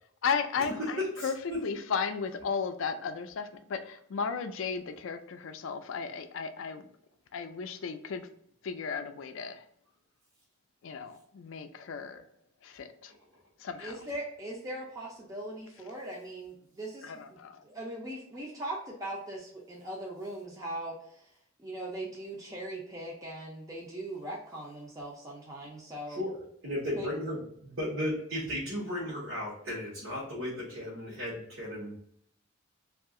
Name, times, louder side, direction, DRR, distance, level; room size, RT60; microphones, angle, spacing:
voice 1, 0.2-1.4 1.6-6.8 7.3-8.3 8.6-9.6 10.8-12.2 12.6-13.1 13.6-13.9 17.0-17.6, left 5 dB, 65° left, 0.3 m, -35 dB
voice 2, 0.8-1.6 26.1-26.4 26.6-31.9, left 1 dB, 65° right, 0.9 m, -35 dB
voice 3, 13.8-21.3 21.6-26.2 27.0-27.1, right 1 dB, 15° right, 0.4 m, -40 dB
2.7 x 2.4 x 3.6 m
head